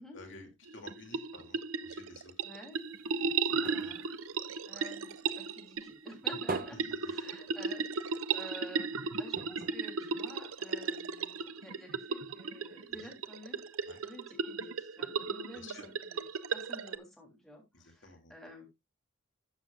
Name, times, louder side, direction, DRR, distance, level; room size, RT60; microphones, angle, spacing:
voice 1, 0.0-2.3 3.4-3.9 6.7-7.1 13.0-13.1 13.9-14.0 15.5-15.9 17.7-18.3, left 2 dB, 60° left, 4 dB, 2.7 m, -52 dB
sound 1, 0.7-16.9, right 5 dB, 90° right, 0.8 m, -35 dB
voice 2, 2.4-2.8 3.2-3.3 3.6-4.0 4.7-13.6 14.0-16.2 16.5-18.7, equal, ahead, 0 dB, 3.2 m, -51 dB
sound 2, 2.7-5.4 5.8-8.0 8.3-8.4 8.7-8.9 9.3-10.8 11.5-11.6, right 3 dB, 45° right, 0.8 m, -43 dB
12.5 x 7.5 x 2.4 m, 0.20 s
head